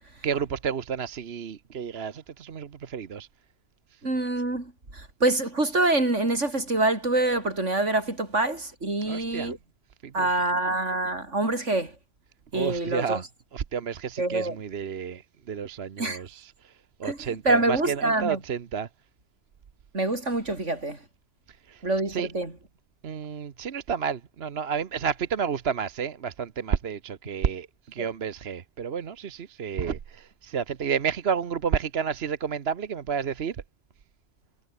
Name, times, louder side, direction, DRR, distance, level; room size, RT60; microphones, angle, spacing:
voice 1, 0.2-3.3 9.1-9.5 10.0-10.3 12.5-13.2 13.5-16.7 17.0-18.9 21.7-21.8 22.1-22.3 23.0-33.6, right 7 dB, 60° right, 1.2 m, -31 dB
voice 2, 4.0-9.6 10.1-12.0 12.5-13.2 14.2-14.6 16.0-16.2 17.0-18.4 19.9-21.0 21.8-22.5 28.0-28.1, right 2 dB, 80° right, 5.4 m, -26 dB
omnidirectional pair, 1.2 m